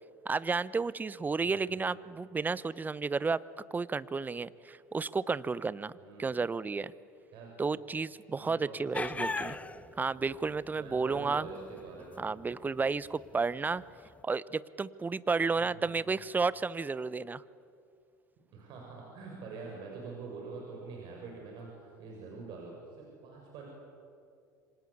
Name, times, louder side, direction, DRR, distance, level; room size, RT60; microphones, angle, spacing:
voice 1, 0.2-3.4 3.7-5.9 6.2-6.9 7.6-9.5 10.0-11.5 12.2-13.8 14.2-17.4, right 4 dB, 20° right, 19 dB, 0.9 m, -32 dB
voice 2, 1.4-1.8 6.0-6.4 7.3-7.5 8.3-9.5 10.7-12.3 15.6-16.0 18.5-23.7, right 4 dB, 55° right, -1 dB, 6.8 m, -45 dB
sound 1, 8.9-14.2, left 3 dB, 15° left, 0.9 m, -39 dB
27.5 x 25.0 x 8.5 m, 2.4 s
hypercardioid pair, 70°, 9 cm